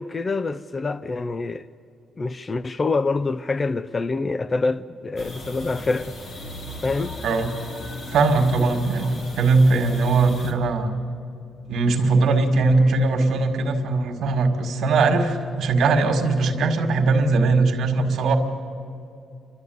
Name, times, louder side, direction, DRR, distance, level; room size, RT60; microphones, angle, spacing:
voice 1, 0.0-1.7 2.2-6.2 6.8-7.2, left 3 dB, 25° left, 0.4 m, -26 dB
sound 1, 5.2-10.5, left 1 dB, 45° left, 2.6 m, -36 dB
voice 2, 8.1-10.9 11.7-18.4, right 3 dB, 70° right, 2.0 m, -20 dB
29.5 x 12.5 x 9.4 m
cardioid pair, 130°, 0 cm